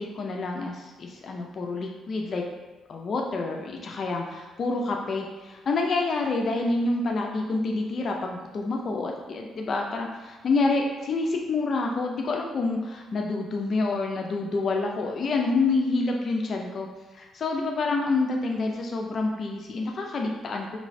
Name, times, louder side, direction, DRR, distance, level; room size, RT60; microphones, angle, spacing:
voice 1, 0.0-2.4 2.9-16.9 17.1-20.8, left 3 dB, 50° left, 1 dB, 0.4 m, -28 dB
3.2 x 3.0 x 2.6 m, 1.2 s
cardioid pair, 90°, 0 cm